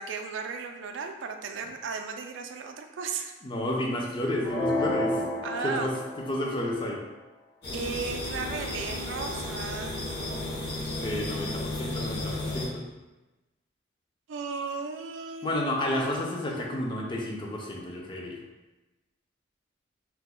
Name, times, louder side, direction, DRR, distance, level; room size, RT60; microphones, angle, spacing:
voice 1, 0.0-3.3 5.4-5.9 7.7-10.2 14.3-15.6 15.9-16.9, right 5 dB, 75° right, 5 dB, 0.3 m, -36 dB
voice 2, 3.4-5.2 5.6-5.9 6.3-7.0 11.0-12.8 15.4-18.4, left 1 dB, 25° left, -1 dB, 0.4 m, -31 dB
sound 1, 4.4-6.5, left 1 dB, 70° left, 1.3 m, -30 dB
sound 2, 7.6-12.7, left 2 dB, 55° left, 0.9 m, -33 dB
2.9 x 2.0 x 3.6 m, 1.1 s
head